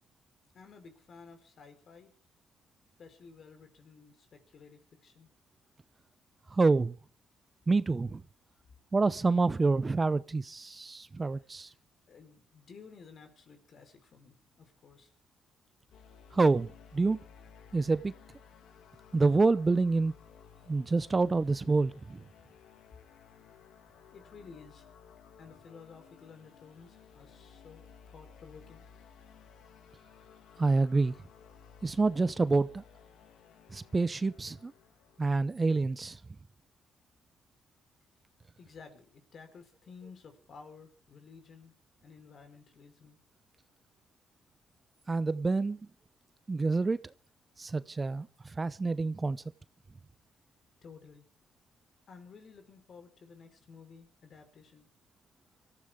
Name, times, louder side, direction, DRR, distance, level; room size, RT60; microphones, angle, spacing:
voice 1, 0.5-2.1 3.0-5.3 11.3-11.7 12.1-15.1 24.1-24.9 25.4-28.9 38.6-41.7 42.0-43.2 50.8-51.3 52.1-54.9, left 5 dB, 55° left, 4.4 m, -53 dB
voice 2, 6.5-7.0 7.7-8.2 8.9-11.7 16.3-17.2 17.7-18.1 19.1-20.1 20.7-22.2 30.6-31.1 31.8-32.8 33.7-34.7 35.2-36.2 45.1-45.8 46.5-47.0 47.6-49.4, right 3 dB, 25° right, 0.7 m, -27 dB
sound 1, 15.9-35.4, left 7 dB, 80° left, 2.3 m, -56 dB
24.5 x 14.0 x 3.7 m
cardioid pair, 90°, 0 cm